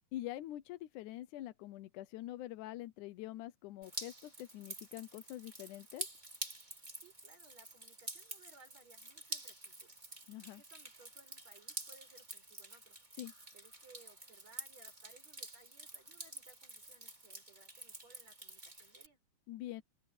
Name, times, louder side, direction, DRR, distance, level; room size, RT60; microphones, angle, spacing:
voice 1, 0.1-6.1 10.3-10.6 13.1-13.3 19.5-19.8, left 14 dB, 75° left, 2.0 m, -45 dB
Drip, 3.8-19.1, right 2 dB, 15° right, 3.1 m, -48 dB
voice 2, 7.0-10.0 10.5-13.0 13.5-19.2, right 3 dB, 45° right, 7.2 m, -63 dB
open air
omnidirectional pair, 4.1 m